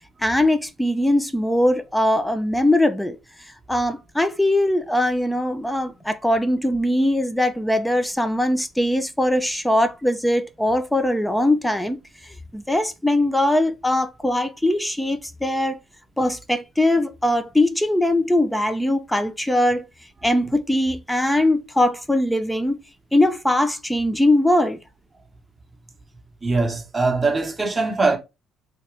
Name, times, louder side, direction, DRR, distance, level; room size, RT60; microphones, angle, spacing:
voice 1, 0.2-3.2 3.7-12.0 12.5-15.8 16.2-19.9 20.2-22.8 23.1-24.8, left 1 dB, 5° left, 0.4 m, -21 dB
voice 2, 26.4-28.2, right 3 dB, 15° right, 1.0 m, -21 dB
3.3 x 2.7 x 3.3 m
cardioid pair, 90°, 0 cm